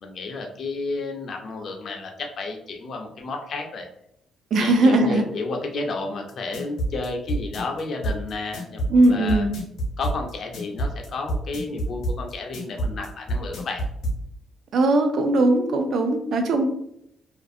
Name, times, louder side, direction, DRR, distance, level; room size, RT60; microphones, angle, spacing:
voice 1, 0.0-3.9 4.6-9.5 10.0-13.8, left 3 dB, 40° left, 3 dB, 0.4 m, -32 dB
voice 2, 4.5-5.2 8.9-9.5 14.7-16.6, right 2 dB, 50° right, 6 dB, 0.3 m, -19 dB
sound 1, 6.3-14.2, right 1 dB, 70° left, 0.7 m, -27 dB
2.5 x 2.4 x 2.5 m, 0.76 s
cardioid pair, 180°, 0 cm